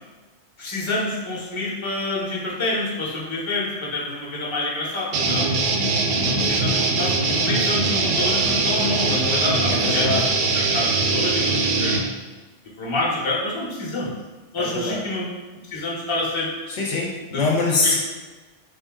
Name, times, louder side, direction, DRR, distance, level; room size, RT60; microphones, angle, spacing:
voice 1, 0.6-5.5 6.2-12.0 12.8-14.1 14.5-15.2 15.7-16.5 17.3-17.5 17.8-18.0, left 2 dB, 30° left, -4 dB, 0.7 m, -27 dB
sound 1, 5.1-12.0, right 3 dB, 65° right, 0.6 m, -21 dB
voice 2, 9.7-10.2 14.6-15.0 16.7-18.0, left 3 dB, 70° left, -1 dB, 0.9 m, -23 dB
3.3 x 2.7 x 3.6 m, 1.3 s
omnidirectional pair, 1.3 m